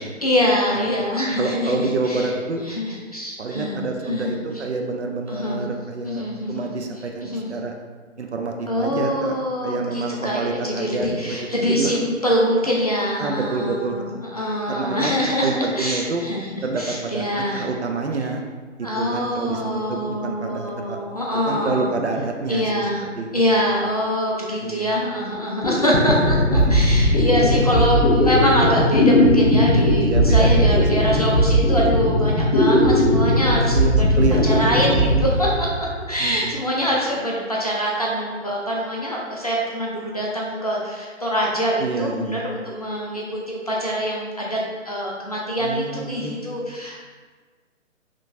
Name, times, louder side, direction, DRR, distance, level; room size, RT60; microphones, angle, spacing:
voice 1, 0.0-2.3 2.6-4.6 5.3-5.6 6.0-6.7 7.2-7.5 8.7-17.7 18.8-21.9 22.5-23.0 23.3-35.5 36.1-44.6 44.9-47.1, equal, 30° left, -4 dB, 0.4 m, -24 dB
voice 2, 1.4-2.6 3.4-6.2 6.5-7.7 8.2-9.3 9.6-12.0 12.6-12.7 13.2-13.9 14.7-15.1 15.4-16.2 16.6-17.3 17.5-18.4 18.8-21.0 21.5-22.8 23.2-23.3 24.6-25.0 26.5-26.9 27.2-27.3 27.8-27.9 30.0-31.2 33.7-35.3 36.2-36.6 41.8-42.4 45.6-46.4, right 3 dB, 60° right, 3 dB, 0.6 m, -27 dB
sound 1, 25.3-25.4 25.6-36.1, equal, 50° left, 1.3 m, -18 dB
4.3 x 3.0 x 2.7 m, 1.4 s
figure-of-eight pair, 140°, 39 cm